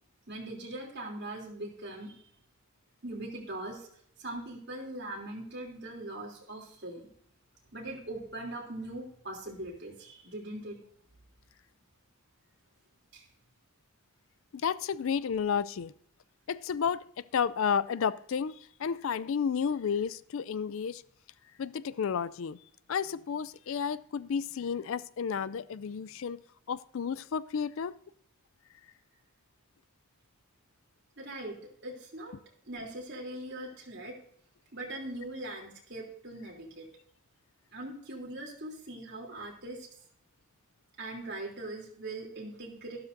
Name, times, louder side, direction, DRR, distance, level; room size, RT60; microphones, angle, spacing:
voice 1, 0.3-2.1 3.0-3.9 4.2-7.1 7.7-10.8 13.1-13.3 31.2-32.3 32.7-34.1 34.7-36.9 37.7-39.9 41.0-43.0, right 1 dB, 50° right, 3.2 m, -41 dB
voice 2, 14.6-15.9 16.5-21.0 21.6-22.6 22.9-26.4 26.7-28.0, left 7 dB, 60° left, 0.4 m, -32 dB
13.0 x 12.0 x 2.7 m
head